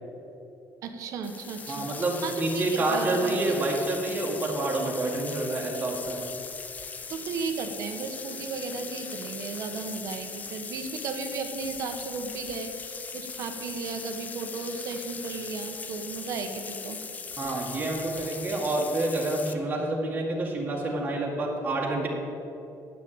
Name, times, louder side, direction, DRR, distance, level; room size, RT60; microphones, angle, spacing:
voice 1, 0.8-1.9 2.2-3.6 7.1-17.0, right 4 dB, 60° right, 6 dB, 1.3 m, -35 dB
sound 1, 1.2-19.5, left 5 dB, 25° left, 0.6 m, -39 dB
voice 2, 1.7-6.3 17.4-22.1, right 2 dB, 25° right, -3 dB, 1.9 m, -28 dB
9.6 x 8.6 x 8.9 m, 2.9 s
cardioid pair, 160°, 6 cm